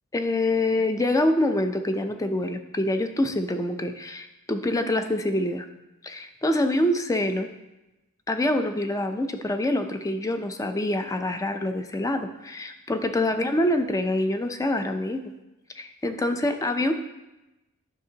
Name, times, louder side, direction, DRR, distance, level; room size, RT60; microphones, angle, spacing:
voice 1, 0.1-5.7 6.0-7.5 8.3-15.2 15.8-16.9, left 1 dB, 15° left, 7 dB, 0.4 m, -25 dB
9.1 x 5.8 x 2.8 m, 0.99 s
head